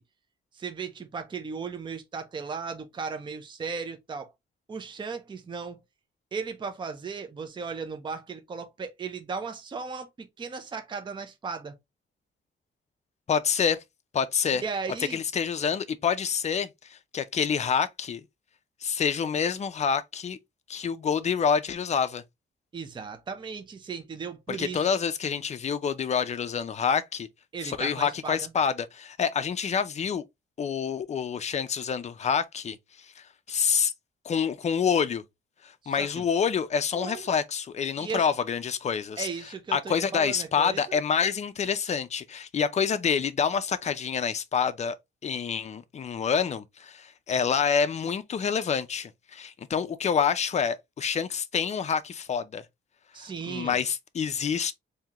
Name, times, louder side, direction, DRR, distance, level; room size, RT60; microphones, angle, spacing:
voice 1, 0.5-4.3 4.7-5.8 6.3-11.8 14.5-15.2 22.7-24.9 27.5-28.5 35.8-36.3 36.9-37.2 38.0-38.2 39.2-41.0 53.1-53.8, right 5 dB, 25° right, 0.5 m, -36 dB
voice 2, 13.3-13.8 14.1-14.6 15.1-18.2 18.8-20.4 20.7-22.2 24.5-27.3 27.6-30.2 30.6-32.8 33.2-33.9 34.3-35.2 35.6-39.3 39.7-45.0 45.2-52.6 53.4-54.7, left 6 dB, 35° left, 0.4 m, -27 dB
3.6 x 2.7 x 2.8 m
wide cardioid pair, 150°, 20 cm